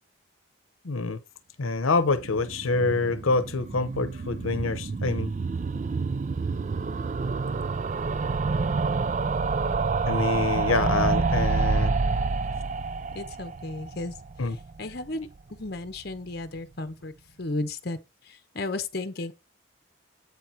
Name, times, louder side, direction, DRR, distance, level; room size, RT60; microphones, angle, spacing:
voice 1, 0.8-1.2 1.6-5.3 10.1-11.9 14.4-14.6, left 3 dB, 85° left, 0.8 m, -26 dB
sound 1, 2.0-15.1 15.4-15.5 15.7-15.8 16.0-16.1, right 4 dB, 35° right, 0.3 m, -28 dB
voice 2, 13.1-17.1 17.4-19.3, left 2 dB, 50° left, 0.9 m, -34 dB
8.3 x 4.2 x 4.5 m
head